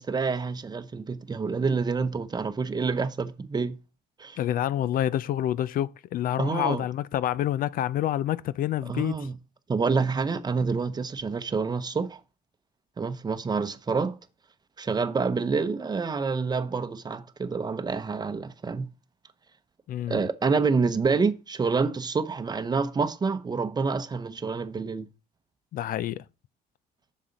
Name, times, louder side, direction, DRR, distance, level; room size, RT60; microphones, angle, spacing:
voice 1, 0.0-3.8 4.2-4.4 6.4-6.8 8.8-9.4 9.7-12.2 13.0-14.2 14.8-18.9 20.1-25.1, right 4 dB, 25° right, 0.8 m, -27 dB
voice 2, 4.4-9.3 19.9-20.2 25.7-26.2, left 12 dB, 55° left, 0.4 m, -28 dB
7.4 x 6.4 x 4.1 m
cardioid pair, 110°, 17 cm